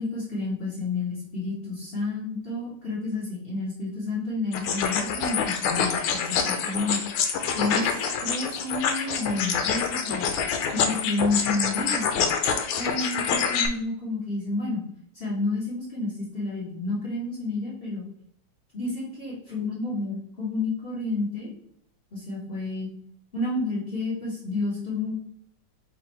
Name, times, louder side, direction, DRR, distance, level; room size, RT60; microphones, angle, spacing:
voice 1, 0.0-7.0 7.5-10.3 10.7-12.3 12.8-14.8 15.1-18.0 18.7-21.5 22.1-22.9 23.3-25.1, left 2 dB, 35° left, -7 dB, 1.1 m, -30 dB
sound 1, 4.5-13.7, left 6 dB, 80° left, 1.5 m, -26 dB
4.3 x 2.6 x 4.3 m, 0.67 s
omnidirectional pair, 2.4 m